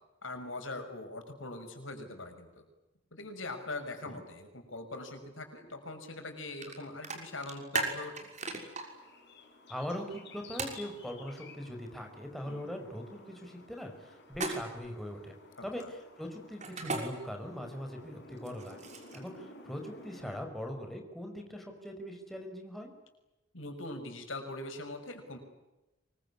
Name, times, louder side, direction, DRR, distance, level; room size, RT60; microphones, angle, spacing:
voice 1, 0.2-2.6 3.1-8.3 12.4-12.7 15.6-15.9 23.5-25.4, left 2 dB, 80° left, 6 dB, 6.2 m, -42 dB
sound 1, 6.6-6.7 7.0-8.8 10.6-10.8 14.3-14.9 16.6-17.0 18.4-19.3, right 4 dB, 35° right, 6.3 m, -35 dB
sound 2, 8.4-20.4, left 2 dB, 60° left, 6.6 m, -54 dB
voice 2, 9.7-15.4 15.6-18.8 19.1-22.9, equal, ahead, 2 dB, 5.2 m, -41 dB
25.0 x 23.5 x 9.8 m, 1.0 s
head